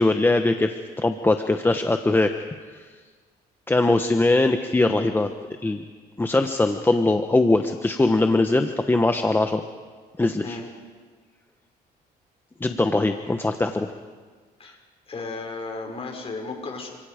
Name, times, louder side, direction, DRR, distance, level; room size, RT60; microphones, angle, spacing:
voice 1, 0.0-2.3 3.7-5.3 5.6-5.8 6.2-9.6 10.2-10.6 12.6-13.9, left 2 dB, 10° left, 6 dB, 1.1 m, -21 dB
voice 2, 15.1-16.9, left 3 dB, 35° left, 2 dB, 6.0 m, -34 dB
29.5 x 26.5 x 5.2 m, 1.5 s
cardioid pair, 110°, 17 cm